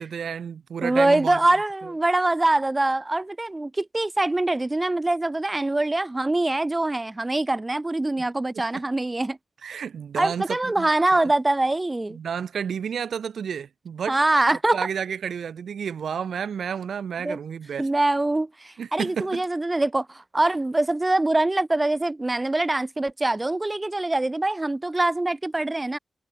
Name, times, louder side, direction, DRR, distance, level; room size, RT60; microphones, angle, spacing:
voice 1, 0.0-1.4 1.8-1.9 8.5-8.6 9.6-11.3 12.1-14.2 14.7-17.9 18.8-19.4, right 7 dB, 75° right, 0.8 m, -31 dB
voice 2, 0.8-9.4 10.2-12.2 14.1-14.8 17.2-17.4 17.8-26.0, right 2 dB, 15° right, 0.5 m, -24 dB
wide cardioid pair, 170°, 0 cm